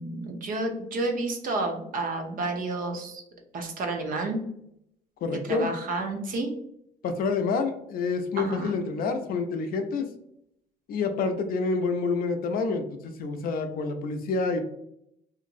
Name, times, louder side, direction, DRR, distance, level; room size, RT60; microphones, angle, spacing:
voice 1, 0.0-3.2 3.5-4.4 5.5-6.5 8.4-8.7, right 2 dB, 55° right, 3 dB, 0.7 m, -30 dB
voice 2, 5.2-5.7 7.0-10.1 10.9-14.6, left 4 dB, 60° left, 6 dB, 0.5 m, -28 dB
2.9 x 2.5 x 2.5 m, 0.75 s
cardioid pair, 110°, 17 cm